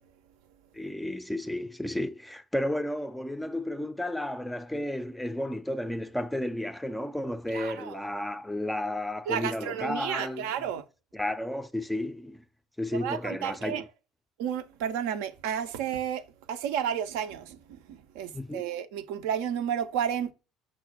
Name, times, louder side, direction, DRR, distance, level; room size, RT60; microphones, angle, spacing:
voice 1, 0.7-10.7 11.1-12.4 12.8-13.8 18.3-18.6, left 1 dB, 5° left, 0.4 m, -32 dB
voice 2, 7.5-8.0 9.3-10.8 12.9-13.8 14.4-20.3, right 9 dB, 70° right, 0.3 m, -32 dB
5.9 x 2.1 x 2.7 m
figure-of-eight pair, 60°, 0 cm